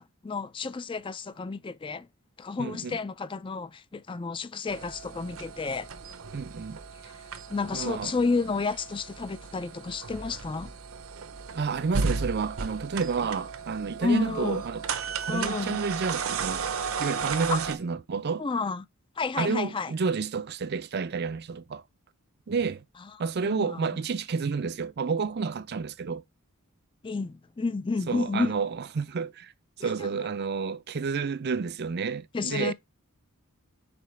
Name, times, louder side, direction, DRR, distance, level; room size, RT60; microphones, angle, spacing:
voice 1, 0.0-2.1 2.4-5.9 7.0-7.1 7.5-10.7 14.0-14.6 15.3-15.8 17.5-17.6 18.4-18.8 19.2-19.9 23.4-23.9 27.0-28.5 29.8-29.9 32.3-32.7, left 4 dB, 25° left, 0.4 m, -31 dB
voice 2, 2.6-3.0 6.3-6.8 7.7-8.1 11.5-14.8 15.2-16.6 17.0-18.4 19.4-21.8 22.5-22.8 23.2-26.2 28.1-29.5 29.8-32.7, right 5 dB, 50° right, 0.5 m, -30 dB
sound 1, 4.7-17.8, right 5 dB, 70° right, 0.8 m, -35 dB
5.1 x 4.5 x 5.7 m
head